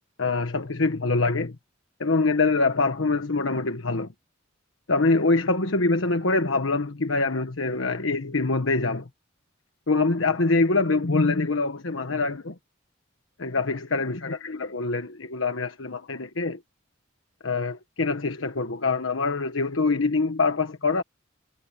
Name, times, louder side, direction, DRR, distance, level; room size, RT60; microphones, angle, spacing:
voice 1, 0.2-1.5 2.0-4.1 4.9-9.0 9.9-12.5 13.4-16.6 17.4-21.0, left 3 dB, 80° left, 1.3 m, -24 dB
head